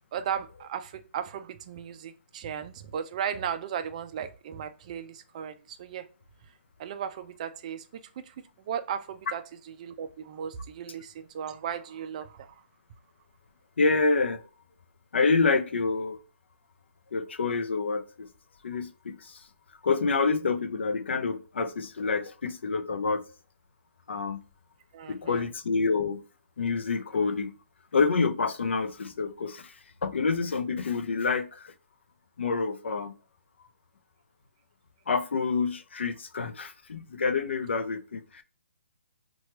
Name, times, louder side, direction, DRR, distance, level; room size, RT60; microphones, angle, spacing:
voice 1, 0.1-6.1 6.8-12.6 24.9-25.4, right 8 dB, 35° right, 0.3 m, -36 dB
voice 2, 13.8-14.4 15.1-16.2 17.1-18.3 18.6-19.4 19.8-23.2 24.1-24.4 25.1-26.2 26.6-27.5 27.9-31.7 32.4-33.1 35.1-38.4, left 4 dB, 75° left, 0.4 m, -27 dB
2.8 x 2.3 x 2.8 m
hypercardioid pair, 150°, 6 cm